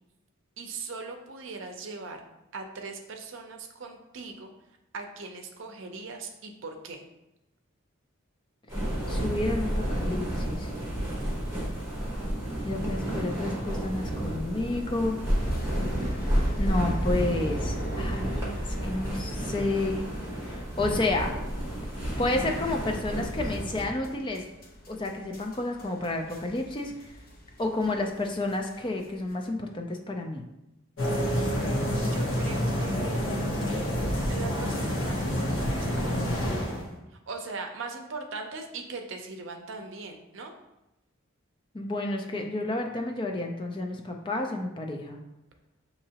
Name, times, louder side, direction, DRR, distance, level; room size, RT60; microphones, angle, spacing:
voice 1, 0.6-2.2 2.5-4.5 4.9-7.0 32.1-33.2 34.3-36.4 37.1-40.5, right 3 dB, 65° right, 4 dB, 0.6 m, -40 dB
sound 1, 8.7-23.8, equal, 10° right, 1.2 m, -31 dB
voice 2, 9.1-10.7 12.6-15.2 16.6-18.5 18.8-20.0 20.4-21.3 22.2-24.4 24.9-26.9 27.6-30.4 41.7-45.2, left 2 dB, 25° left, 3 dB, 0.4 m, -30 dB
sound 2, 15.4-29.3, equal, 45° left, 0.7 m, -39 dB
sound 3, 31.0-36.9, equal, 65° left, 1.1 m, -28 dB
6.4 x 2.8 x 2.8 m, 0.92 s
head